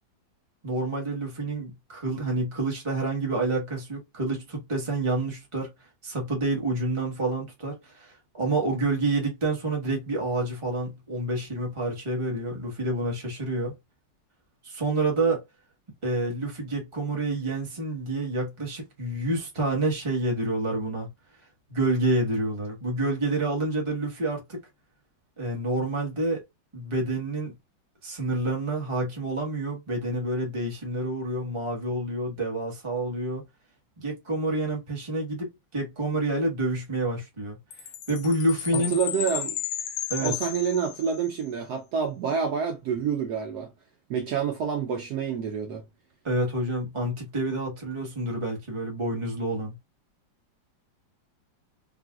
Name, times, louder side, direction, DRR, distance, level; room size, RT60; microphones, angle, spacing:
voice 1, 0.6-5.7 6.0-13.7 14.6-15.4 16.0-21.1 21.7-24.6 25.4-26.4 26.7-27.5 28.0-33.4 34.0-37.6 38.1-39.0 40.1-40.3 46.2-49.7, right 2 dB, 20° right, 1.0 m, -28 dB
Chime, 37.7-41.4, left 10 dB, 70° left, 1.0 m, -34 dB
voice 2, 38.7-39.6 40.2-43.7 44.1-45.8, right 7 dB, 65° right, 1.1 m, -28 dB
3.6 x 2.5 x 2.3 m
omnidirectional pair, 2.0 m